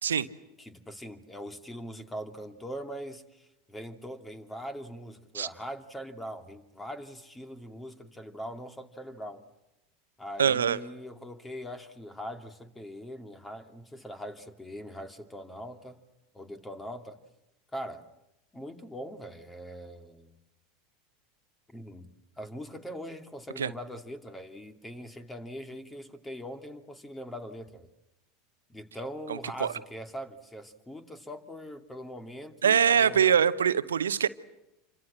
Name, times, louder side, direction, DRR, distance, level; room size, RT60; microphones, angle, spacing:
voice 1, 0.6-9.4 10.2-16.0 16.3-17.2 17.7-18.0 18.5-20.3 21.7-22.1 22.4-27.9 28.7-33.3, equal, 10° left, 2.6 m, -41 dB
voice 2, 10.4-10.8 23.6-23.7 29.3-29.7 32.6-34.3, right 8 dB, 80° right, 0.9 m, -23 dB
28.0 x 24.5 x 7.7 m
figure-of-eight pair, 80°, 0 cm